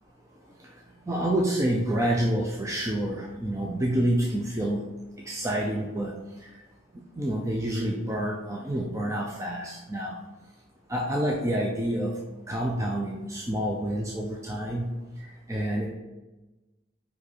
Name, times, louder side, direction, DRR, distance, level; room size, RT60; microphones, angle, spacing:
voice 1, 1.1-4.8 5.2-6.5 7.2-10.2 10.9-12.2 12.5-14.9 15.2-15.9, right 1 dB, 15° right, -1 dB, 0.6 m, -28 dB
5.6 x 4.7 x 4.2 m, 1.1 s
head